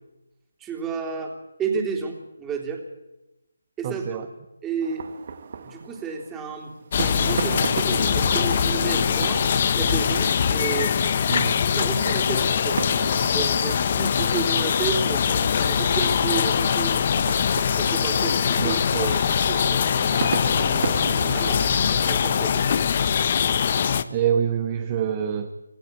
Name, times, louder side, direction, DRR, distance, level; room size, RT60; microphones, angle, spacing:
voice 1, 0.6-1.3 1.6-2.8 3.8-4.3 4.6-5.1 5.6-10.9 11.7-12.8 13.2-17.1 17.8-22.8, right 5 dB, 10° right, 1 dB, 3.4 m, -32 dB
voice 2, 3.8-4.3 11.3-11.6 18.6-19.1 24.1-25.5, right 8 dB, 25° right, 7 dB, 1.3 m, -26 dB
sound 1, 4.8-21.9, right 5 dB, 45° right, 1.7 m, -35 dB
sound 2, 6.9-24.0, left 7 dB, 40° left, 1.0 m, -22 dB
26.5 x 15.0 x 8.4 m, 0.98 s
figure-of-eight pair, 155°, 0 cm